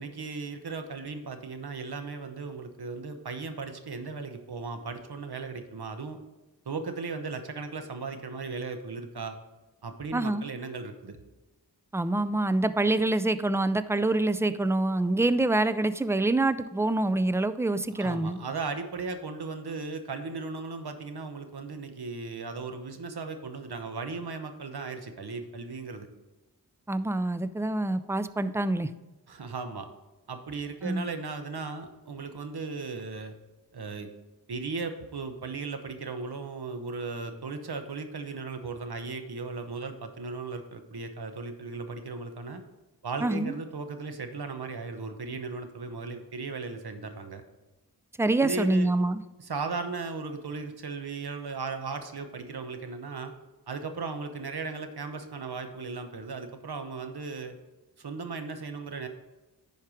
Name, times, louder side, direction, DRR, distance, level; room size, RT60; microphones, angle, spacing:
voice 1, 0.0-6.2 6.7-9.4 9.8-11.2 18.0-26.1 29.3-29.9 30.3-33.3 33.7-34.1 34.5-42.6 43.0-47.4 48.4-48.9 49.4-53.3 53.7-57.5 58.0-59.1, right 4 dB, 70° right, 7 dB, 1.0 m, -36 dB
voice 2, 10.1-10.5 11.9-18.4 26.9-28.9 30.8-31.1 43.2-43.5 48.2-49.2, right 2 dB, 5° right, 12 dB, 0.4 m, -26 dB
10.5 x 4.6 x 4.9 m, 1.1 s
wide cardioid pair, 50°, 40 cm